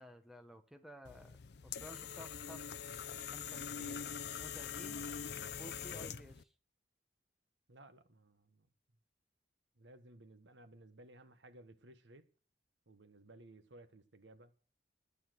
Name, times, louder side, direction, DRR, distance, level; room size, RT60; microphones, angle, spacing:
voice 1, 0.0-1.4 1.6-2.7 3.3-4.0 4.4-5.1 5.6-6.5, equal, ahead, 1.3 m, -54 dB
sound 1, 1.0-6.4, left 7 dB, 65° left, 0.6 m, -44 dB
voice 2, 7.7-8.7 9.8-12.2 12.9-14.5, right 1 dB, 90° right, 1.4 m, -58 dB
12.0 x 9.9 x 6.4 m
head